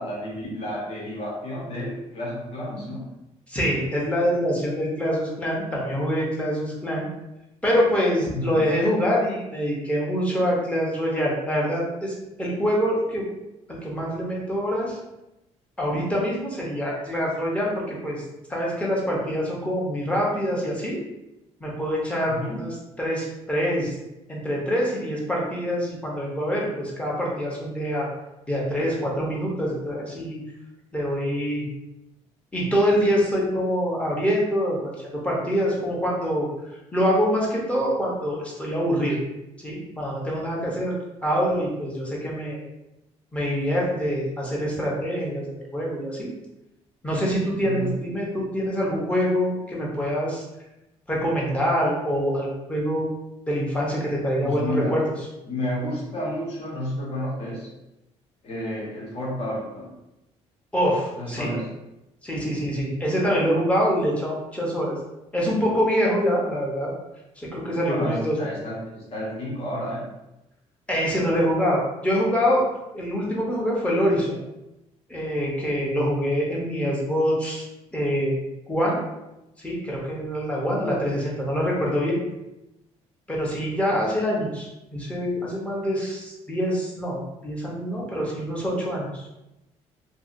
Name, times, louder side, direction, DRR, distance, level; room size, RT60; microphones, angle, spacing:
voice 1, 0.0-3.1 8.3-8.6 22.3-22.6 47.6-47.9 54.4-55.0 55.4-57.7 58.4-59.9 61.2-61.7 67.7-70.1, equal, 55° left, -4 dB, 1.2 m, -31 dB
voice 2, 3.5-7.0 7.6-13.2 13.7-15.0 15.8-18.2 18.5-21.0 21.6-22.7 23.0-23.9 24.3-28.1 28.5-30.4 30.9-31.7 32.5-36.5 36.9-39.2 39.6-40.9 41.2-42.6 43.3-45.5 45.7-46.3 47.0-50.4 51.1-53.1 53.5-55.0 60.7-61.5 62.2-64.9 65.3-66.9 67.4-68.4 70.9-72.6 72.9-74.4 75.1-77.6 77.9-78.3 78.7-79.0 79.6-82.2 83.3-89.2, equal, 10° left, -4 dB, 0.8 m, -25 dB
2.8 x 2.7 x 2.6 m, 0.92 s
cardioid pair, 135°, 12 cm